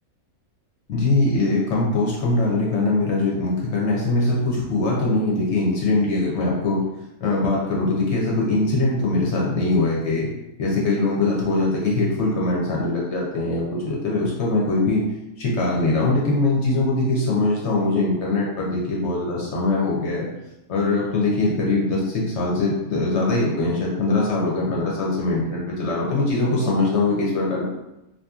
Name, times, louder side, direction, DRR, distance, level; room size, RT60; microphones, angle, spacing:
voice 1, 0.9-6.8 7.2-10.3 10.6-15.0 15.4-20.3 20.7-27.6, left 2 dB, 60° left, -4 dB, 0.8 m, -22 dB
2.8 x 2.5 x 2.3 m, 0.91 s
omnidirectional pair, 1.5 m